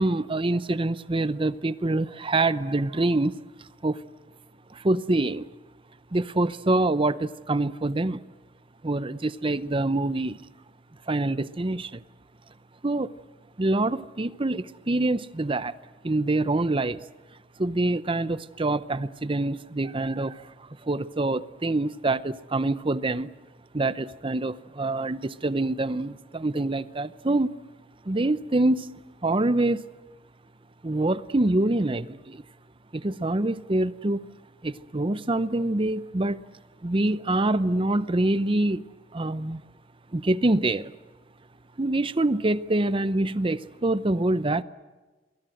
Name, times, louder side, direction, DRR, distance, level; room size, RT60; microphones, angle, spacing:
voice 1, 0.0-3.4 3.8-4.0 4.7-5.4 6.1-8.2 8.8-10.4 11.1-12.0 12.8-13.1 13.6-15.7 16.0-17.0 17.6-23.3 23.7-27.5 28.0-28.9 29.2-29.8 30.8-32.4 32.9-34.2 34.6-36.4 36.8-38.8 39.1-39.6 40.1-40.9 41.8-44.6, right 2 dB, 30° right, 15 dB, 0.7 m, -25 dB
27.5 x 23.0 x 7.8 m, 1.2 s
head